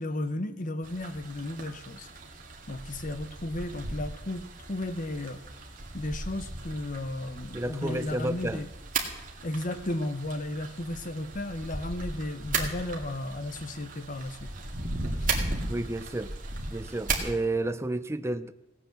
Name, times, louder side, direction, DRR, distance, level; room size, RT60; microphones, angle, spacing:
voice 1, 0.0-2.1 2.7-5.4 5.9-8.7 9.4-14.5 15.2-15.3, left 1 dB, 45° left, 1.0 m, -34 dB
sound 1, 0.8-17.3, right 3 dB, 45° right, 2.2 m, -36 dB
voice 2, 7.5-8.6 15.7-16.3 16.7-18.5, right 2 dB, 15° right, 0.5 m, -31 dB
16.5 x 9.3 x 7.2 m
head